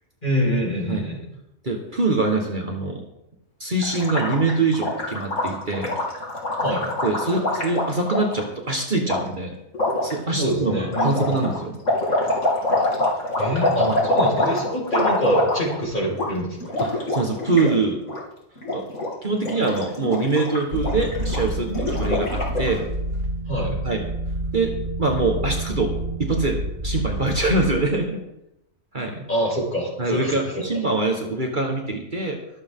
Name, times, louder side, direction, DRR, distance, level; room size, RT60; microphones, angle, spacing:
voice 1, 0.2-1.2 6.6-6.8 10.3-11.6 13.4-16.7 23.5-23.8 29.3-30.6, equal, 40° left, -4 dB, 5.7 m, -25 dB
voice 2, 1.6-3.0 3.6-5.9 7.0-9.6 10.0-11.8 13.8-14.0 16.8-18.0 18.7-18.9 19.2-22.9 23.8-24.0 24.5-24.7 25.0-25.9 26.2-28.2 28.9-29.2 30.0-32.4, right 3 dB, 40° right, 2 dB, 1.7 m, -24 dB
Gurgling, 3.8-8.4 9.1-9.2 9.7-10.1 10.9-15.8 16.1-16.3 16.6-17.7 18.0-18.2 18.6-19.1 19.4-22.8, left 1 dB, 75° left, 3.3 m, -25 dB
sound 1, 20.7-27.8, right 1 dB, 90° right, 4.9 m, -28 dB
24.0 x 7.9 x 3.8 m, 0.86 s
omnidirectional pair, 1.3 m